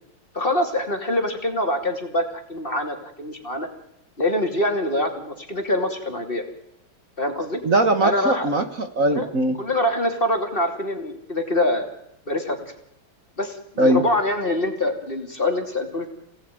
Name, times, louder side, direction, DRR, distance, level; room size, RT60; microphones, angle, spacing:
voice 1, 0.3-3.7 4.2-6.4 7.2-7.6 8.0-8.5 9.1-9.3 9.6-11.9 12.3-12.6 13.4-16.1, left 1 dB, 25° left, 5 dB, 3.0 m, -24 dB
voice 2, 7.6-9.6 13.8-14.0, right 1 dB, 45° right, 8 dB, 2.0 m, -20 dB
28.5 x 18.0 x 9.4 m, 0.79 s
omnidirectional pair, 2.1 m